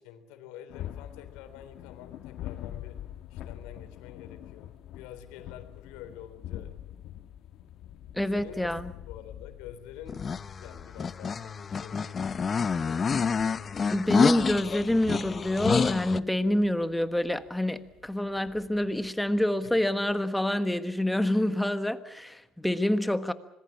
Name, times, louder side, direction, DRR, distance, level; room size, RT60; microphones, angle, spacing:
voice 1, 0.0-3.0 3.3-6.7 8.3-8.7 9.1-10.2 10.5-12.4 12.8-13.4 19.6-19.7 21.4-21.5, left 10 dB, 90° left, 9 dB, 3.5 m, -48 dB
sound 1, 0.7-20.2, left 12 dB, 65° left, 1.5 m, -46 dB
voice 2, 8.1-8.9 13.9-23.3, left 1 dB, 5° left, 11 dB, 1.4 m, -27 dB
sound 2, 10.1-16.2, left 5 dB, 30° left, 0.8 m, -28 dB
26.0 x 20.0 x 7.3 m, 0.86 s
cardioid pair, 105°, 0 cm